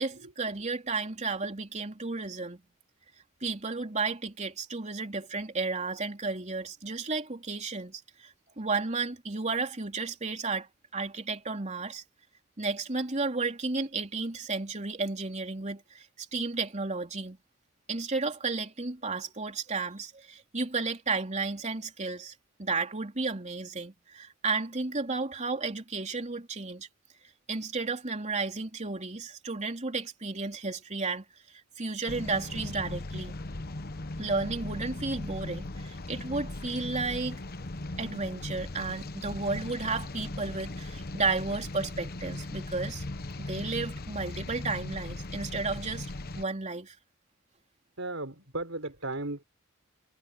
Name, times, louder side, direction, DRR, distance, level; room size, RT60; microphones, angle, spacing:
voice 1, 0.0-2.6 3.4-12.0 12.6-17.4 17.9-22.3 22.6-26.9 27.5-33.3 34.2-37.4 38.0-43.0 43.4-46.1 46.4-47.0, right 3 dB, 35° right, 3.5 m, -33 dB
sound 1, 32.1-46.4, left 2 dB, 50° left, 1.1 m, -38 dB
voice 2, 48.0-49.4, right 2 dB, 70° right, 6.4 m, -35 dB
head